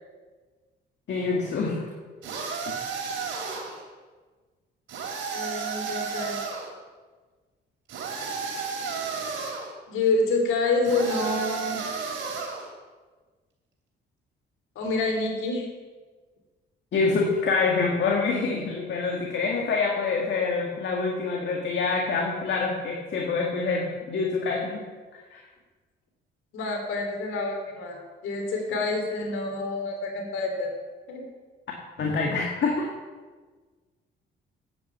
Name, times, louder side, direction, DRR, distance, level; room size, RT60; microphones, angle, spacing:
voice 1, 1.1-1.8 16.9-24.8 25.3-25.4 32.0-32.9, left 4 dB, 65° left, 0 dB, 1.8 m, -26 dB
sound 1, 2.2-3.8 4.9-6.7 7.9-9.7 10.8-12.7, right 5 dB, 75° right, 2.9 m, -32 dB
voice 2, 5.3-6.4 9.9-11.8 14.7-15.7 26.5-30.7 31.1-31.2, left 3 dB, 85° left, 2 dB, 2.8 m, -27 dB
9.4 x 8.4 x 7.1 m, 1.4 s
cardioid pair, 90°, 20 cm